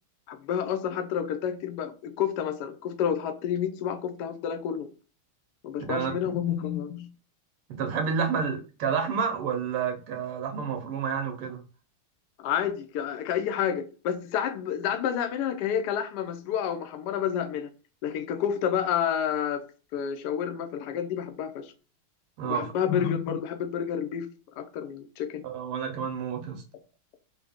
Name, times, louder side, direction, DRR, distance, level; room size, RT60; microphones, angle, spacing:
voice 1, 0.3-4.9 5.6-7.1 12.4-17.7 18.0-19.6 19.9-21.7 22.4-24.3 24.6-25.4, left 8 dB, 90° left, 0.9 m, -29 dB
voice 2, 5.9-6.4 7.7-11.6 22.4-22.7 25.4-26.6, right 6 dB, 90° right, 1.8 m, -30 dB
4.5 x 2.1 x 3.5 m
omnidirectional pair, 2.4 m